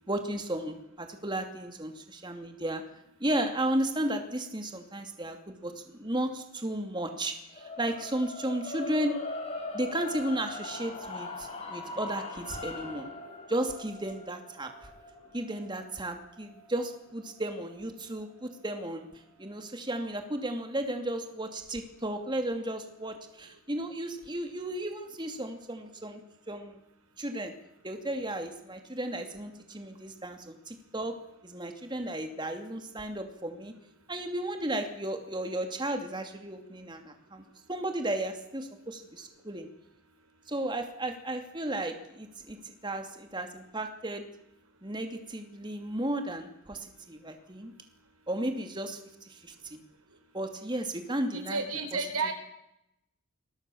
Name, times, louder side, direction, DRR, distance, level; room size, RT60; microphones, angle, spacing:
voice 1, 0.1-2.8 3.2-9.2 9.7-13.1 13.5-14.9 15.3-19.1 19.4-26.2 26.5-26.8 27.2-27.5 27.8-31.2 31.4-33.7 34.1-39.7 40.5-44.2 44.8-47.7 48.3-49.8 50.3-51.6, right 1 dB, 20° right, 6 dB, 2.7 m, -34 dB
sound 1, 7.5-17.7, left 2 dB, 30° left, 6.2 m, -41 dB
voice 2, 51.3-52.3, right 4 dB, 80° right, 8 dB, 4.6 m, -31 dB
27.5 x 22.0 x 7.1 m, 0.83 s
head